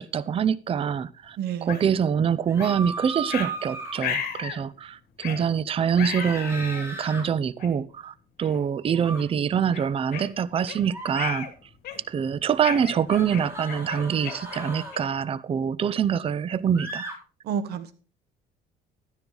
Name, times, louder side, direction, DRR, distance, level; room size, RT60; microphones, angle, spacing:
voice 1, 0.0-11.5 12.1-17.1, right 7 dB, 35° right, 0.5 m, -25 dB
voice 2, 1.4-1.8 17.5-17.9, right 8 dB, 70° right, 1.2 m, -30 dB
sound 1, 1.7-1.8 2.6-2.8 3.3-3.5 4.0-4.6 5.2-5.4 5.9-6.9 7.6-7.7 8.4-8.6 9.0-9.2 9.7-10.8 11.1-11.5 11.8-12.2 12.6-15.2, left 8 dB, 65° left, 2.7 m, -34 dB
sound 2, 2.5-4.0 6.2-7.2 9.0-9.2 10.8-11.1 13.1-15.0 16.7-17.1, right 3 dB, 15° right, 4.6 m, -36 dB
12.0 x 10.0 x 3.9 m
cardioid pair, 110°, 17 cm